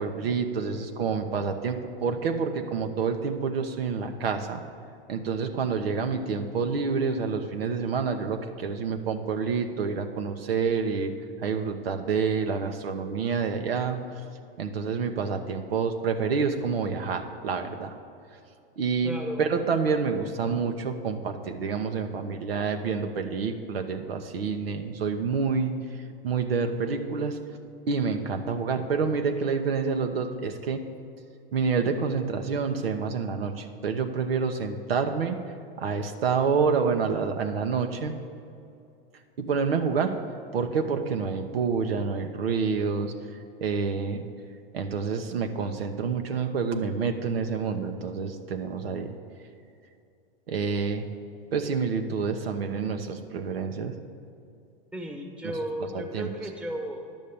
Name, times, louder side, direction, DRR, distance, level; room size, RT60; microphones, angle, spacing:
voice 1, 0.0-4.6 5.1-11.1 11.4-14.0 14.6-17.9 18.8-25.8 26.2-27.4 27.9-30.9 31.5-35.4 35.8-38.1 39.4-40.1 40.5-43.1 43.6-44.2 44.7-49.1 50.5-51.0 51.5-54.0 55.4-55.5 56.1-56.3, right 5 dB, 90° right, 5 dB, 1.0 m, -28 dB
voice 2, 19.0-19.4 54.9-57.1, equal, 5° right, 3 dB, 1.2 m, -34 dB
10.5 x 6.4 x 7.0 m, 2.6 s
hypercardioid pair, 120°, 29 cm